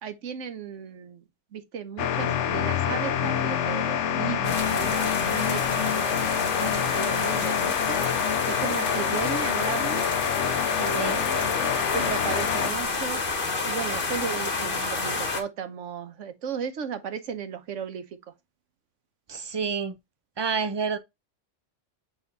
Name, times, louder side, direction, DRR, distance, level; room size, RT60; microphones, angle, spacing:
voice 1, 0.0-1.2 1.5-8.0 8.4-10.1 10.7-13.2 13.6-18.0, right 7 dB, 85° right, 1.2 m, -35 dB
sound 1, 2.0-12.7, left 9 dB, 70° left, 0.9 m, -27 dB
sound 2, 4.4-15.4, left 3 dB, 50° left, 1.4 m, -29 dB
voice 2, 19.3-20.0 20.4-21.0, right 5 dB, 35° right, 0.4 m, -28 dB
7.3 x 3.5 x 3.9 m
omnidirectional pair, 1.2 m